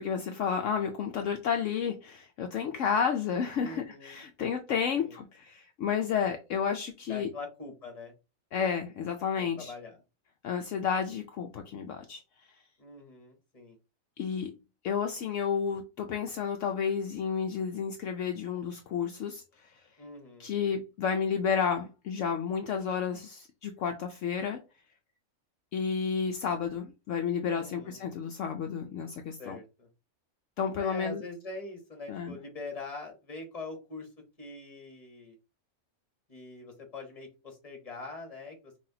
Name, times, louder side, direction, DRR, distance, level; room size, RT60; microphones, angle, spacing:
voice 1, 0.0-7.3 8.5-9.7 10.4-12.5 14.2-14.5 14.8-19.7 20.4-24.6 25.7-29.6 30.6-31.2 32.1-32.3, left 7 dB, 70° left, 0.9 m, -31 dB
voice 2, 3.6-4.3 4.9-5.2 7.1-8.1 9.3-10.0 12.8-13.8 20.0-20.5 27.5-28.1 29.4-29.9 30.8-34.1 34.4-35.4 36.3-38.8, left 3 dB, 30° left, 1.1 m, -43 dB
5.7 x 2.7 x 2.7 m
omnidirectional pair, 1.4 m